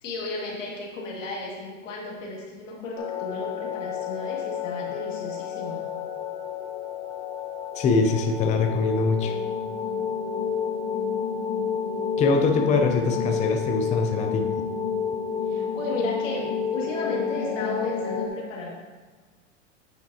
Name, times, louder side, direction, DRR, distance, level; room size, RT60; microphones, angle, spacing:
voice 1, 0.0-5.8 10.0-10.1 15.5-18.8, left 2 dB, 90° left, -2 dB, 2.1 m, -34 dB
sound 1, 3.0-18.3, left 6 dB, 35° left, 1.0 m, -30 dB
voice 2, 7.8-9.3 12.2-14.5, left 4 dB, 20° left, 4 dB, 0.5 m, -23 dB
9.2 x 5.2 x 2.8 m, 1.4 s
supercardioid pair, 130°, 37 cm